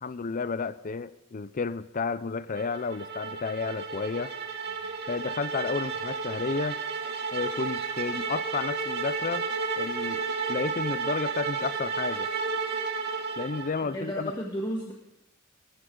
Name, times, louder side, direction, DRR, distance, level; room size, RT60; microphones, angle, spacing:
voice 1, 0.0-4.3 5.1-6.8 7.3-9.5 9.8-12.3 13.4-14.3, left 4 dB, 40° left, 15 dB, 0.5 m, -32 dB
sound 1, 2.6-13.9, right 5 dB, 50° right, 2.3 m, -32 dB
voice 2, 13.8-14.9, equal, 20° left, -2 dB, 1.6 m, -33 dB
20.0 x 14.5 x 3.8 m, 0.87 s
head